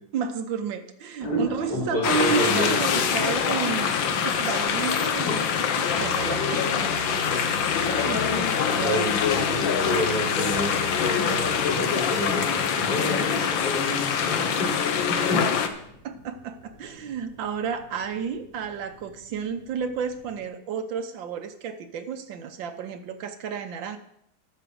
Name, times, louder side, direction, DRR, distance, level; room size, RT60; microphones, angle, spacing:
voice 1, 0.1-4.0 4.2-5.5 5.8-6.6 7.3-7.4 7.9-8.3 8.6-8.9 16.0-24.0, right 6 dB, 85° right, 8 dB, 1.7 m, -31 dB
voice 2, 1.2-2.7 5.3-5.4 6.5-6.9 7.7-7.8 8.3-8.5 8.7-10.7 11.3-15.4, equal, 60° left, -4 dB, 4.5 m, -30 dB
sound 1, 1.2-20.5, left 1 dB, 45° left, 4.0 m, -46 dB
sound 2, 2.0-15.7, left 7 dB, 85° left, 1.7 m, -24 dB
Musical instrument, 6.0-11.7, right 5 dB, 65° right, 1.4 m, -39 dB
13.0 x 5.5 x 7.7 m, 0.74 s
omnidirectional pair, 2.0 m